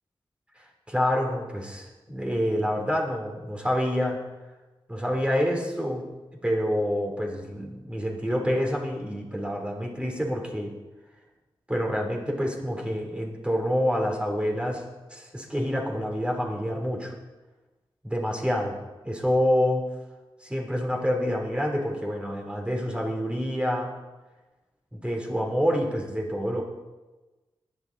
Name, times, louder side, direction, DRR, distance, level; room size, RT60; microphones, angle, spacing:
voice 1, 0.6-4.2 4.9-6.0 6.4-10.7 11.7-14.8 15.1-17.1 18.0-18.8 19.0-19.9 20.4-23.9 24.9-26.6, equal, 10° right, 0 dB, 3.1 m, -27 dB
21.0 x 9.1 x 4.0 m, 1.2 s
wide cardioid pair, 85°, 9 cm